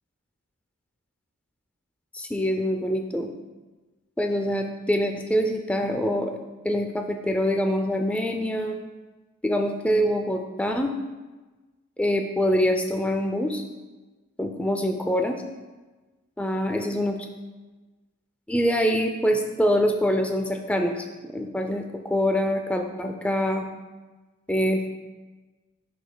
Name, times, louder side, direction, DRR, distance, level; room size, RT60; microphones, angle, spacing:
voice 1, 2.1-3.3 4.2-6.3 6.6-8.8 9.4-10.9 12.0-13.6 14.4-15.4 16.4-17.2 18.5-23.6 24.5-24.9, equal, 5° left, 4 dB, 0.4 m, -25 dB
10.5 x 5.0 x 2.2 m, 1.2 s
head